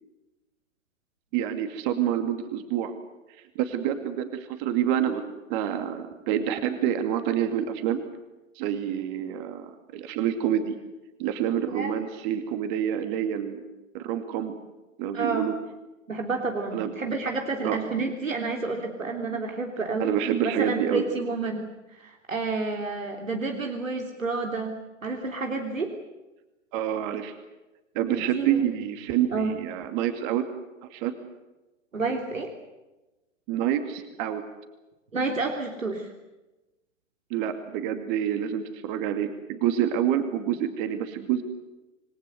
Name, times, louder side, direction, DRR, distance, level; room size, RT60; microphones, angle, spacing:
voice 1, 1.3-2.9 3.5-5.2 5.5-8.0 8.6-10.8 11.2-13.6 13.9-14.5 15.0-15.5 16.7-16.9 17.6-17.8 20.0-21.0 26.7-27.3 27.9-30.4 30.8-31.1 33.5-34.4 37.3-41.4, right 10 dB, 40° right, 8 dB, 2.6 m, -27 dB
voice 2, 15.1-15.5 16.1-20.2 20.4-24.7 25.0-25.9 28.1-28.6 29.3-29.5 31.9-32.5 35.1-36.1, right 3 dB, 80° right, 3 dB, 3.3 m, -30 dB
27.5 x 20.5 x 7.9 m, 1.1 s
figure-of-eight pair, 110°, 39 cm